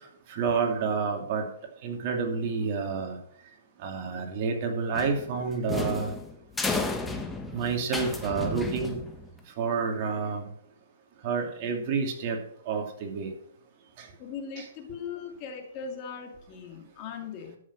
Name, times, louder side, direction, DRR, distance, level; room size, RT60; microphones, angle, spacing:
voice 1, 0.3-1.5 1.8-3.2 3.8-6.1 7.5-9.0 9.6-10.5 11.2-12.4 12.7-13.3 14.0-14.1 14.6-14.7, right 5 dB, 40° right, 2 dB, 2.8 m, -29 dB
sound 1, 4.9-9.4, left 3 dB, 5° left, 1.2 m, -33 dB
voice 2, 14.2-17.6, left 6 dB, 35° left, 4 dB, 2.2 m, -39 dB
12.5 x 6.3 x 6.1 m, 0.65 s
hypercardioid pair, 150°, 0 cm